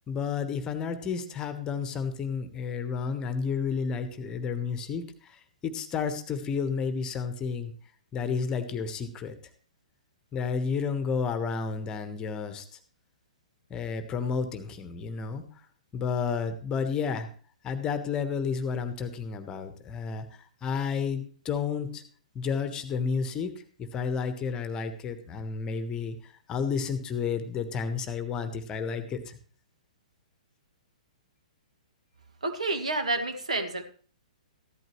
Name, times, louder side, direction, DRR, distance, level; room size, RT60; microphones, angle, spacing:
voice 1, 0.1-7.7 8.1-9.3 10.3-12.8 13.7-15.4 15.9-17.3 17.6-22.0 22.3-23.5 23.8-29.4, left 5 dB, 20° left, 10 dB, 1.3 m, -31 dB
voice 2, 32.4-33.8, right 2 dB, 65° right, 6 dB, 2.0 m, -29 dB
14.5 x 12.0 x 3.1 m, 0.42 s
figure-of-eight pair, 115°, 4 cm